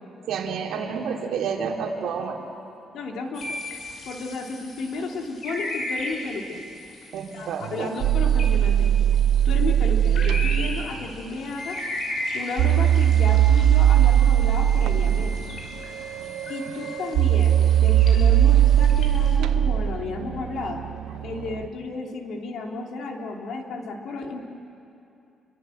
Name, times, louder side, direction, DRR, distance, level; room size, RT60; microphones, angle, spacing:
voice 1, 0.3-2.4 7.1-7.9 16.2-16.6, right 6 dB, 70° right, 1 dB, 3.1 m, -30 dB
voice 2, 2.9-3.5 4.1-6.6 7.3-8.9 9.4-11.8 12.3-15.4 16.5-20.8 21.2-24.4, left 3 dB, 65° left, 1 dB, 3.0 m, -32 dB
sound 1, 3.3-19.4, left 1 dB, 45° left, 5.4 m, -37 dB
sound 2, 7.6-10.9 12.6-21.7, right 11 dB, 90° right, 0.7 m, -20 dB
Wind instrument woodwind instrument, 11.6-16.9, equal, 15° left, 3.8 m, -41 dB
30.0 x 23.0 x 7.9 m, 2.7 s
cardioid pair, 165°, 0 cm